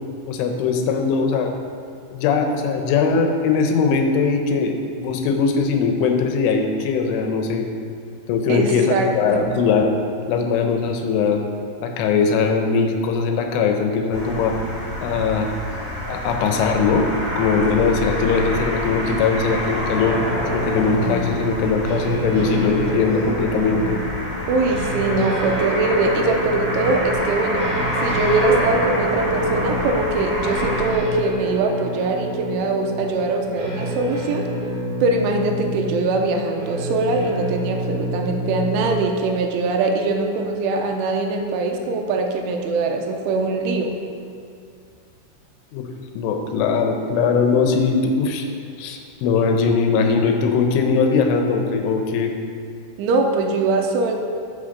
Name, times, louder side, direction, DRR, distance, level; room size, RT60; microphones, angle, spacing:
voice 1, 0.3-1.5 2.1-7.7 8.3-9.9 10.3-11.4 11.8-14.6 15.0-15.5 16.1-17.1 17.4-20.2 20.5-24.0 45.7-45.9 46.2-48.5 48.8-52.3, left 5 dB, 80° left, 4 dB, 3.2 m, -20 dB
voice 2, 8.5-9.5 24.5-27.7 28.0-34.5 35.0-43.9 53.0-54.1, right 3 dB, 80° right, 3 dB, 3.2 m, -22 dB
sound 1, 14.1-30.8, equal, 25° right, 2.1 m, -27 dB
sound 2, 20.0-38.9, right 1 dB, 40° right, 3.3 m, -28 dB
9.0 x 7.4 x 6.5 m, 2.3 s
omnidirectional pair, 5.7 m